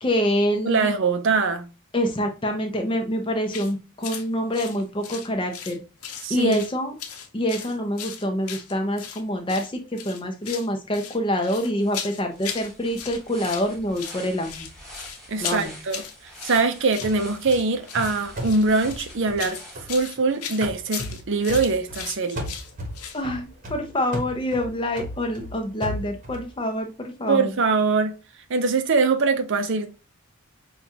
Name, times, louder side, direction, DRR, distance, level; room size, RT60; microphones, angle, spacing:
voice 1, 0.0-0.9 1.9-5.8 6.3-7.0 7.3-14.7 15.4-15.8 23.1-27.5, equal, 25° left, 0.7 m, -26 dB
voice 2, 0.6-1.7 6.2-6.6 15.3-16.0 16.4-19.6 19.9-22.5 27.3-28.1 28.5-29.9, right 4 dB, 55° right, 0.5 m, -23 dB
sound 1, 3.5-3.7 4.0-4.3 4.5-5.8 6.0-6.7 7.0-9.2 9.5-9.7 10.0-10.7 10.9-12.7 12.9-13.7 13.9-23.2, left 8 dB, 85° left, 0.7 m, -36 dB
sound 2, 11.3-11.4 11.7-20.5, equal, ahead, 1.4 m, -45 dB
sound 3, 17.0-20.2 20.6-22.1 22.3-26.5, equal, 35° right, 1.0 m, -36 dB
5.8 x 2.4 x 2.8 m
head